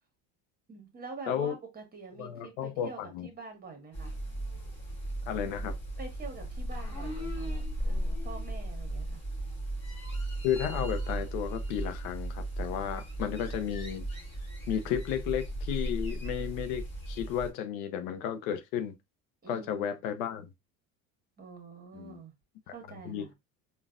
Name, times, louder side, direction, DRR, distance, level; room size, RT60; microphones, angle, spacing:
voice 1, 0.7-4.1 6.0-9.2 19.4-19.9 21.4-22.3 22.7-23.3, right 4 dB, 20° right, 1.3 m, -46 dB
voice 2, 2.2-3.3 5.3-5.8 10.4-14.0 14.7-18.9 19.5-20.5 21.9-22.2 23.0-23.3, left 9 dB, 80° left, 0.7 m, -33 dB
sound 1, 3.9-17.5, right 1 dB, 25° left, 1.8 m, -36 dB
3.9 x 2.4 x 2.5 m
supercardioid pair, 100°, 41 cm